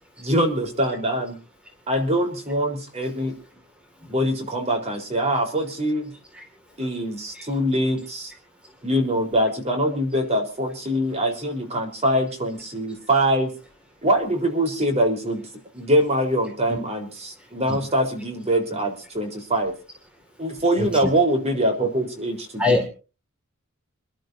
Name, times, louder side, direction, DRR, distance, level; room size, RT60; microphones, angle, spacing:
voice 1, 0.2-1.4 1.9-3.3 4.1-6.1 6.8-8.3 8.8-13.5 14.0-15.5 15.7-19.7 20.4-22.9, right 1 dB, 30° right, 3 dB, 4.0 m, -23 dB
voice 2, 6.3-6.4 7.3-7.4 16.7-16.8 17.7-17.8 20.8-21.0 22.6-22.9, left 2 dB, 5° right, 3 dB, 2.2 m, -23 dB
28.0 x 11.5 x 2.7 m, 0.35 s
head